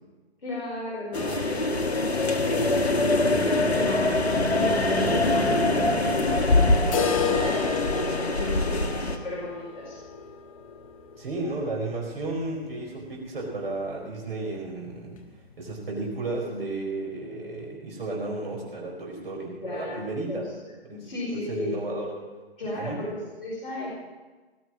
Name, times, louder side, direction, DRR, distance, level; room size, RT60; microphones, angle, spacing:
voice 1, 0.4-4.2 4.5-6.6 7.4-10.0 19.6-21.8 22.6-24.0, left 1 dB, 60° left, -4 dB, 4.8 m, -35 dB
sound 1, 1.1-9.2, left 2 dB, 80° left, 1.8 m, -23 dB
sound 2, 6.9-12.7 13.0-13.1 13.5-13.6 14.1-14.2 15.0-15.1, left 7 dB, 35° left, 1.2 m, -32 dB
voice 2, 11.2-15.1 15.6-20.4 20.9-22.1 22.6-23.0, right 2 dB, 65° right, -2 dB, 4.6 m, -33 dB
18.5 x 6.5 x 8.9 m, 1.3 s
figure-of-eight pair, 145°, 32 cm